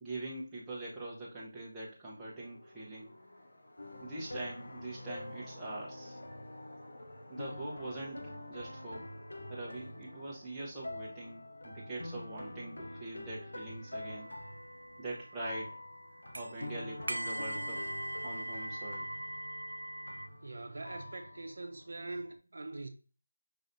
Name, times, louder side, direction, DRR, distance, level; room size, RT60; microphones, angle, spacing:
voice 1, 0.0-3.1 4.0-6.2 7.3-9.1 9.5-14.3 15.0-15.8 16.3-17.9 18.2-19.1, right 2 dB, 5° right, 0.8 m, -43 dB
sound 1, 2.3-21.0, left 1 dB, 45° left, 1.4 m, -57 dB
sound 2, 3.8-22.3, left 1 dB, 85° left, 0.8 m, -47 dB
sound 3, 14.0-20.3, right 1 dB, 80° right, 0.4 m, -42 dB
voice 2, 20.4-22.9, right 2 dB, 60° right, 0.8 m, -43 dB
5.3 x 3.1 x 2.6 m
figure-of-eight pair, 175°, 0 cm